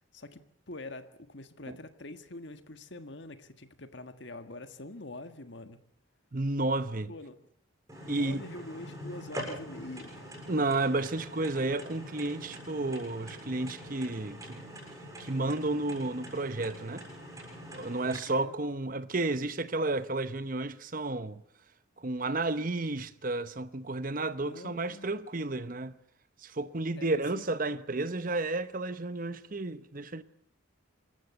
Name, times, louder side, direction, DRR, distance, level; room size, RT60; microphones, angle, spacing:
voice 1, 0.1-5.8 7.1-7.3 8.1-10.5 18.3-18.5 24.3-25.0 26.9-27.1 27.3-27.4, left 2 dB, 60° left, 1.6 m, -45 dB
voice 2, 6.3-7.1 8.1-8.4 10.5-14.6 15.2-17.0 17.7-21.4 22.0-26.0 26.4-30.2, right 2 dB, 40° right, 0.9 m, -32 dB
sound 1, 7.9-18.2, equal, 15° right, 7.1 m, -44 dB
26.0 x 14.5 x 9.5 m
head